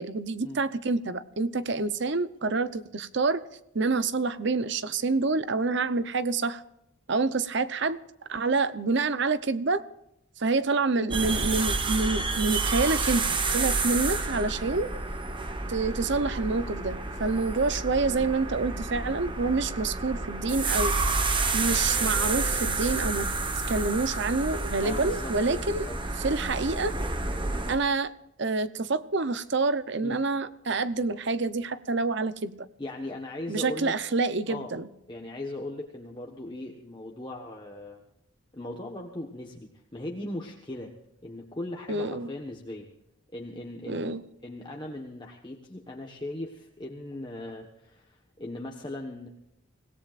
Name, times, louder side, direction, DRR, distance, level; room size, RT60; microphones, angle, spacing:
voice 1, 0.0-3.4 3.7-6.6 7.1-8.0 8.3-9.8 10.4-14.9 15.7-20.9 21.5-23.3 23.7-25.9 26.2-26.9 27.7-28.1 28.4-32.7 33.5-34.8 41.9-42.3 43.9-44.2, right 3 dB, 55° right, 13 dB, 0.8 m, -27 dB
sound 1, 11.1-27.8, right 3 dB, 25° right, 1.2 m, -29 dB
voice 2, 24.8-26.0 30.0-30.2 32.8-33.9 34.5-34.7 35.1-38.0 38.5-40.9 41.2-42.9 43.3-44.2 44.4-49.3, left 1 dB, 20° left, 0 dB, 1.3 m, -38 dB
25.5 x 17.0 x 2.5 m, 0.83 s
head